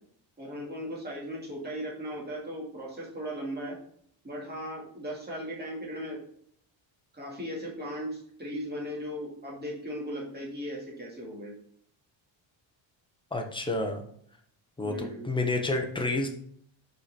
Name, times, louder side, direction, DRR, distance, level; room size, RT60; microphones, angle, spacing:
voice 1, 0.4-3.8 4.2-6.2 7.1-11.5 14.8-15.3, equal, 20° right, -4 dB, 2.4 m, -37 dB
voice 2, 13.3-14.0 14.8-16.3, left 2 dB, 10° left, 3 dB, 0.9 m, -29 dB
5.5 x 4.9 x 4.3 m, 0.64 s
cardioid pair, 150°, 49 cm